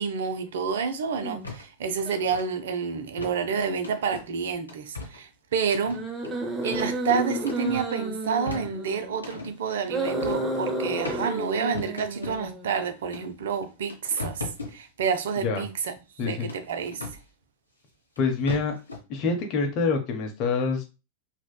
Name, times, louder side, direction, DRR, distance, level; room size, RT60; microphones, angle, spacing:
voice 1, 0.0-6.0 6.6-14.4 14.7-15.9 16.2-17.0, right 6 dB, 60° right, 0.4 m, -29 dB
sound 1, 1.2-1.5 2.0-2.1 5.8-9.1 9.8-12.8, right 2 dB, 15° right, 0.7 m, -31 dB
sound 2, 1.4-1.6 2.0-2.4 3.2-3.4 3.8-4.3 4.7-5.2 5.7-7.0 7.4-7.9 8.3-9.5 10.2-10.5 11.0-11.2 11.7-12.4 13.1-13.2 13.6-14.8 16.5-17.2 18.2-18.3 18.5-19.0, left 3 dB, 80° left, 0.8 m, -38 dB
voice 2, 16.2-16.5 18.2-18.7 19.1-20.8, left 4 dB, 40° left, 0.7 m, -26 dB
3.4 x 2.2 x 2.2 m
figure-of-eight pair, 90°, 0 cm